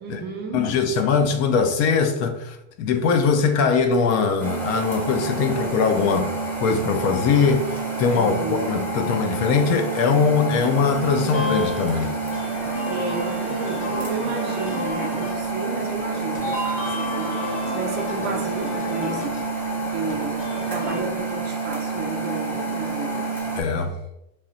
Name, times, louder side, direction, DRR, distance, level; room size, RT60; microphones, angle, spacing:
voice 1, 0.0-0.8 8.1-8.8 12.9-19.5 19.8-23.4, right 4 dB, 30° right, 0.4 m, -32 dB
voice 2, 0.5-6.3 6.6-12.1 23.6-23.9, left 5 dB, 45° left, 0.4 m, -21 dB
sound 1, 4.4-23.6, right 3 dB, 5° left, 0.7 m, -28 dB
sound 2, 11.2-21.0, left 1 dB, 20° left, 1.2 m, -33 dB
3.1 x 2.8 x 3.9 m
cardioid pair, 170°, 37 cm